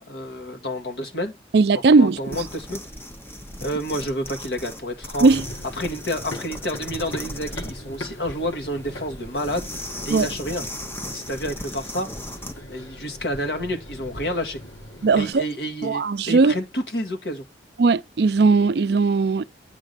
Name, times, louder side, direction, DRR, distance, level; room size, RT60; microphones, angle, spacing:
voice 1, 0.0-1.3 1.7-2.8 3.6-5.3 5.8-10.6 11.1-12.1 12.7-14.6 15.1-17.4, equal, 60° left, 1.7 m, -29 dB
voice 2, 1.5-2.4 5.2-5.4 10.1-10.3 15.0-15.4 15.8-16.6 17.8-19.4, right 4 dB, 60° right, 0.4 m, -18 dB
sound 1, 2.2-12.6, left 1 dB, 10° left, 0.7 m, -37 dB
Run, 5.3-15.3, left 1 dB, 85° left, 1.8 m, -40 dB
9.1 x 3.7 x 6.6 m
head